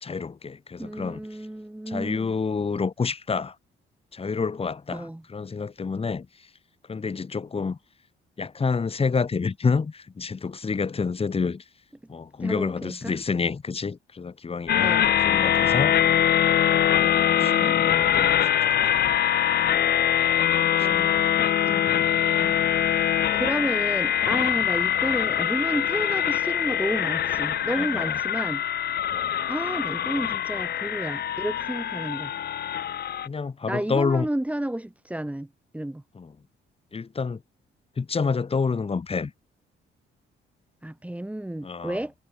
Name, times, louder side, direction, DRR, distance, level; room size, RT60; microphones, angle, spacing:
voice 1, 0.0-1.2 1.9-3.6 4.1-6.3 6.9-7.8 8.4-11.6 12.1-15.0 15.2-15.9 17.0-18.3 18.9-19.0 20.7-21.1 21.7-22.1 24.3-24.6 27.8-28.2 29.1-29.3 33.3-34.3 36.2-36.3 36.9-37.4 38.0-39.3 41.6-42.0, left 5 dB, 30° left, 1.6 m, -28 dB
voice 2, 0.8-2.3 4.9-5.2 12.4-13.1 14.8-15.1 17.4-17.8 20.8-21.7 22.4-22.6 23.3-28.6 29.5-32.3 33.7-35.5 35.7-36.0 40.8-42.1, right 1 dB, 5° right, 1.4 m, -31 dB
sound 1, 14.7-33.3, left 10 dB, 55° left, 0.8 m, -23 dB
cardioid pair, 90°, 20 cm